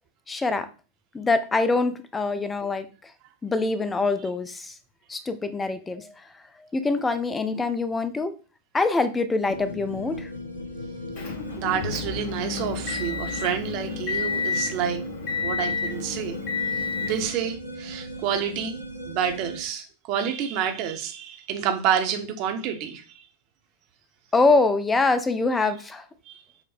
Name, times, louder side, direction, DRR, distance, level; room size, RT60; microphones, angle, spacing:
voice 1, 0.3-0.7 1.1-3.1 3.4-4.7 5.1-6.1 6.7-8.4 8.7-10.3 24.3-26.0, left 3 dB, 15° left, 0.4 m, -24 dB
sound 1, 9.5-19.6, right 1 dB, 85° left, 0.6 m, -38 dB
Motor vehicle (road) / Engine, 11.2-17.3, left 5 dB, 45° left, 1.1 m, -30 dB
voice 2, 11.6-15.0 15.4-16.4 16.6-16.7 17.0-23.2 26.3-26.4, right 8 dB, 40° right, 0.7 m, -29 dB
4.9 x 2.0 x 4.1 m
figure-of-eight pair, 90°, 0 cm